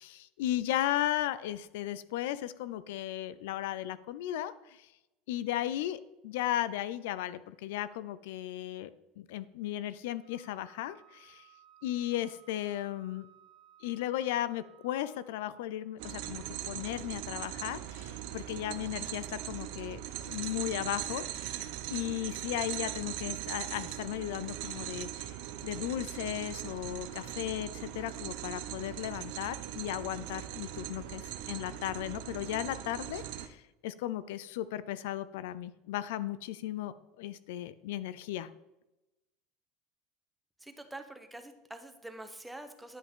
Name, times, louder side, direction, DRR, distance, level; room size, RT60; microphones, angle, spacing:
voice 1, 0.0-4.9 5.3-8.9 9.2-11.5 11.8-13.3 13.8-25.4 25.6-38.5, left 13 dB, 80° left, 16 dB, 0.4 m, -36 dB
Wind instrument woodwind instrument, 10.2-15.4, right 11 dB, 45° left, 2.7 m, -60 dB
sound 1, 16.0-33.5, right 12 dB, 70° right, 0.7 m, -40 dB
voice 2, 40.6-43.0, right 1 dB, 5° right, 7 dB, 0.8 m, -46 dB
10.0 x 5.7 x 3.7 m, 0.97 s
supercardioid pair, 150°, 0 cm